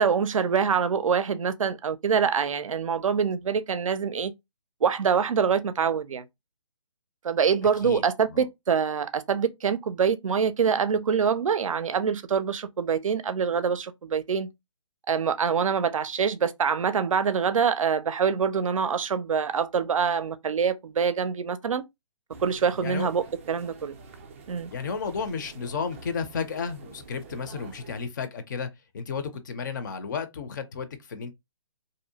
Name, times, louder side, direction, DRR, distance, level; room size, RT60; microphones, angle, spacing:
voice 1, 0.0-4.3 4.8-6.2 7.2-14.5 15.1-21.8 22.4-24.0 24.5-24.7, right 6 dB, 85° right, 0.4 m, -25 dB
sound 1, 22.3-28.1, right 4 dB, 25° right, 0.3 m, -47 dB
voice 2, 24.7-28.7 28.9-31.3, left 5 dB, 35° left, 0.5 m, -33 dB
2.6 x 2.0 x 2.7 m
hypercardioid pair, 155°, 16 cm